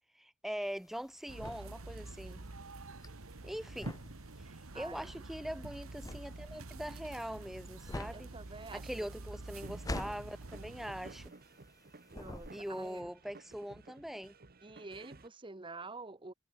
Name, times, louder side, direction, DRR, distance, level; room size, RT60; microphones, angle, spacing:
voice 1, 0.2-2.4 3.4-3.9 4.4-4.5 4.7-8.3 8.7-11.3 12.5-14.3, equal, ahead, 0.4 m, -42 dB
sound 1, 0.6-11.8 12.1-13.0, left 1 dB, 15° left, 0.8 m, -45 dB
sound 2, 1.3-11.3, right 2 dB, 75° right, 1.3 m, -47 dB
voice 2, 4.7-5.1 8.1-9.1 12.1-13.1 14.6-16.3, right 3 dB, 25° right, 1.2 m, -48 dB
sound 3, 9.6-15.3, right 2 dB, 45° right, 1.2 m, -55 dB
head